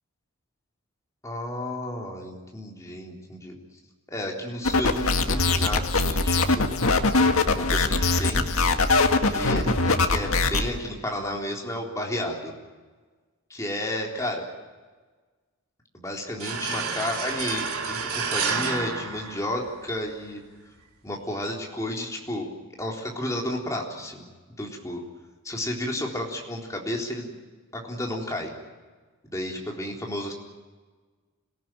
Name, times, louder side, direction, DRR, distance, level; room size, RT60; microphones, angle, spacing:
voice 1, 1.2-3.6 4.1-6.4 7.5-8.5 9.2-12.5 13.5-14.4 15.9-20.4 21.0-22.5 22.8-24.2 24.6-25.0 25.4-27.3 27.7-28.5 29.2-30.3, left 1 dB, 15° left, 0 dB, 3.8 m, -32 dB
sound 1, 4.6-10.6, left 3 dB, 75° left, 1.9 m, -22 dB
sound 2, 16.4-20.0, right 5 dB, 85° right, 3.0 m, -30 dB
26.0 x 17.5 x 9.0 m, 1.4 s
head